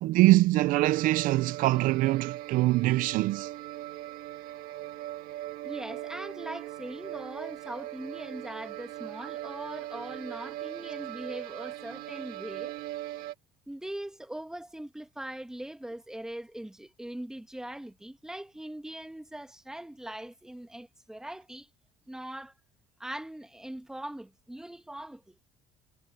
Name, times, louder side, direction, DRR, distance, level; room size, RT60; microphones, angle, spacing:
voice 1, 0.0-3.5, right 17 dB, 70° right, 0.4 m, -23 dB
sound 1, 0.9-13.3, right 15 dB, 85° right, 1.7 m, -40 dB
voice 2, 5.6-12.8 13.7-21.7 22.1-22.5 23.0-25.3, right 1 dB, 5° right, 1.6 m, -41 dB
cardioid pair, 145°, 15 cm